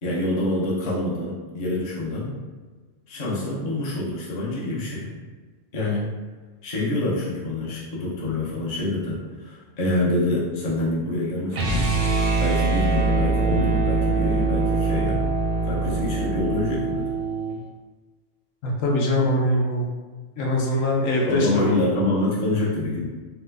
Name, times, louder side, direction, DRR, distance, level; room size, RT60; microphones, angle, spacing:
voice 1, 0.0-2.4 3.1-5.1 5.7-6.1 6.6-12.0 12.4-15.2 15.6-17.0 21.2-23.1, left 2 dB, 40° left, -6 dB, 0.7 m, -26 dB
sound 1, 11.5-17.6, right 3 dB, 60° right, 0.7 m, -23 dB
voice 2, 18.6-19.8 20.4-21.8, left 1 dB, 75° left, -2 dB, 1.0 m, -22 dB
3.0 x 2.2 x 3.4 m, 1.4 s
omnidirectional pair, 1.4 m